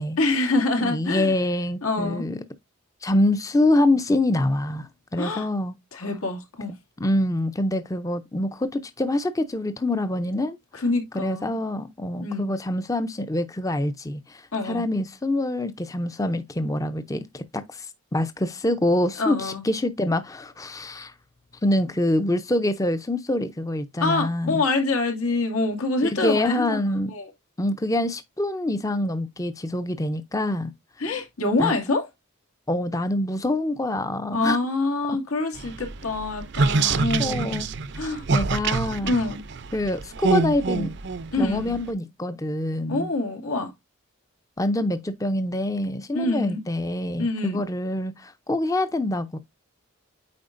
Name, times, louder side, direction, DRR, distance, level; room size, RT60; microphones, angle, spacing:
voice 1, 0.2-1.3 1.8-2.3 5.2-5.5 5.9-6.7 10.7-11.5 12.2-12.5 14.5-14.8 19.2-19.6 24.0-26.8 27.1-27.3 31.0-32.1 34.3-37.6 37.9-38.2 39.0-39.4 41.3-41.8 42.9-43.7 46.1-46.6 47.2-47.6, left 2 dB, 85° left, 2.2 m, -25 dB
voice 2, 0.8-2.4 3.0-5.8 7.0-10.6 11.1-17.9 18.1-21.1 21.6-24.6 26.0-27.1 27.6-30.7 31.6-31.7 32.7-34.6 35.1-35.2 36.8-37.7 38.3-39.2 39.7-41.0 41.4-43.1 44.6-49.4, left 1 dB, 15° left, 0.5 m, -25 dB
sound 1, 35.6-41.9, right 4 dB, 50° right, 0.5 m, -26 dB
8.7 x 4.8 x 2.5 m
head